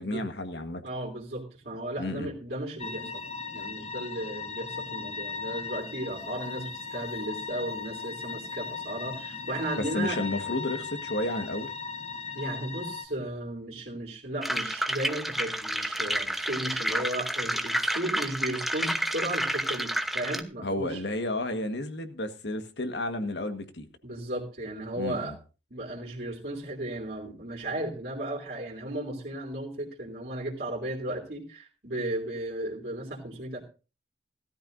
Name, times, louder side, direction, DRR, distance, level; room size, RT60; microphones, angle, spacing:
voice 1, 0.0-0.8 2.0-2.3 9.9-11.7 20.6-23.9 25.0-25.3, left 1 dB, 80° left, 1.6 m, -32 dB
voice 2, 0.8-10.2 12.3-21.0 24.0-25.3 25.7-33.6, right 1 dB, 60° right, 3.3 m, -35 dB
sound 1, 2.8-13.1, left 5 dB, 35° left, 1.2 m, -37 dB
sound 2, 14.4-20.4, right 1 dB, ahead, 0.9 m, -30 dB
18.0 x 13.5 x 2.7 m
head